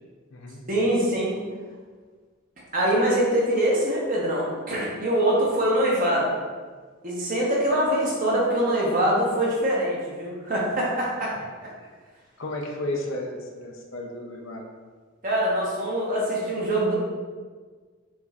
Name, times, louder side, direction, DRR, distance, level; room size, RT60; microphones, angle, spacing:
voice 1, 0.7-1.3 2.7-6.3 7.0-11.7 15.2-17.0, right 1 dB, 40° right, -5 dB, 1.1 m, -24 dB
voice 2, 12.4-14.6, left 1 dB, 65° left, 1 dB, 0.6 m, -33 dB
5.8 x 3.1 x 2.5 m, 1.5 s
head